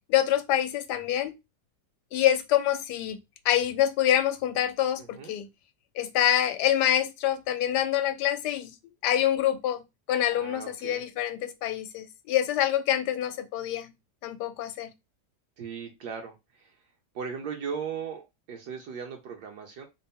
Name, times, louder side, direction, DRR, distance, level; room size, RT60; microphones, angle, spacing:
voice 1, 0.1-1.3 2.1-3.2 3.4-5.5 6.0-8.7 9.0-13.9 14.2-14.9, left 11 dB, 75° left, 1.2 m, -26 dB
voice 2, 5.0-5.4 10.3-11.0 15.6-16.8 17.1-18.2 18.5-19.9, right 6 dB, 70° right, 1.3 m, -37 dB
4.0 x 2.0 x 3.5 m
omnidirectional pair, 1.8 m